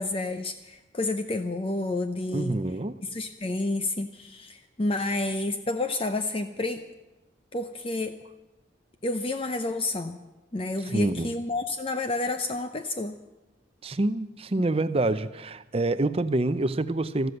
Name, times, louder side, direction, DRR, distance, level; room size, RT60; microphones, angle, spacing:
voice 1, 0.0-2.6 3.1-6.9 7.5-8.2 9.0-10.2 10.5-13.2, left 2 dB, 30° left, 0.6 m, -30 dB
voice 2, 2.3-3.0 10.9-11.3 13.8-17.3, right 2 dB, 30° right, 0.6 m, -27 dB
14.0 x 13.0 x 7.9 m
head